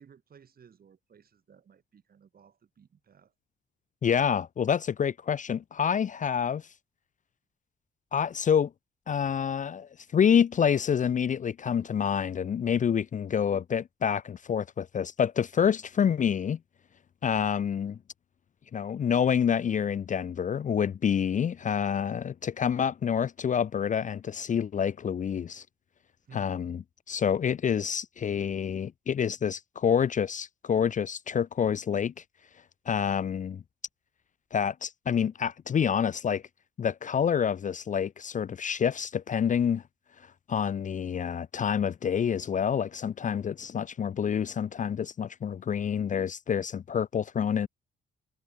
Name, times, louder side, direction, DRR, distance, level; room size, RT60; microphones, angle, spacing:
voice 1, 0.0-3.3 26.2-26.6, right 7 dB, 50° right, 4.5 m, -56 dB
voice 2, 4.0-6.6 8.1-8.7 9.1-16.6 17.2-18.0 18.7-25.6 26.3-26.8 27.1-32.1 32.9-33.6 34.5-36.4 36.8-39.8 40.5-47.7, left 7 dB, 40° left, 0.6 m, -27 dB
cardioid pair, 90°, 20 cm